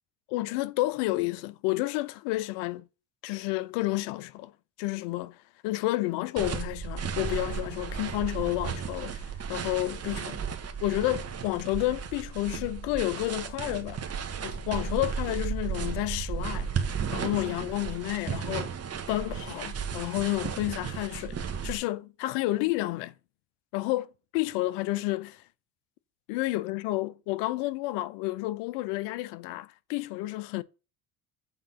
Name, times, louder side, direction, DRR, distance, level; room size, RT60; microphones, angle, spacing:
voice 1, 0.3-2.9 3.2-4.5 4.8-5.4 5.6-10.4 10.8-14.0 14.4-16.7 17.1-18.7 19.1-23.1 23.7-24.1 24.3-25.4 26.3-30.6, left 18 dB, 80° left, 0.7 m, -30 dB
sound 1, 6.4-21.8, right 6 dB, 35° right, 1.4 m, -34 dB
8.2 x 3.8 x 5.6 m
supercardioid pair, 80°, 41 cm